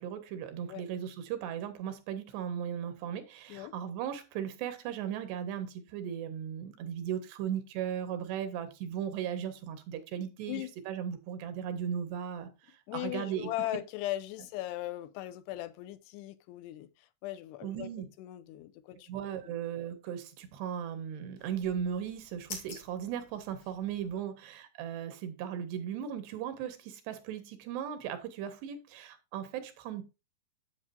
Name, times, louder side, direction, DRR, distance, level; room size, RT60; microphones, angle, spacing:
voice 1, 0.0-13.5 17.6-18.1 19.1-30.0, right 9 dB, 90° right, 3.5 m, -37 dB
voice 2, 12.9-16.9 17.2-17.9 18.2-19.1 24.1-24.3, left 15 dB, 85° left, 2.9 m, -38 dB
sound 1, 21.4-24.2, left 4 dB, 50° left, 3.7 m, -49 dB
9.7 x 8.2 x 2.7 m
omnidirectional pair, 4.7 m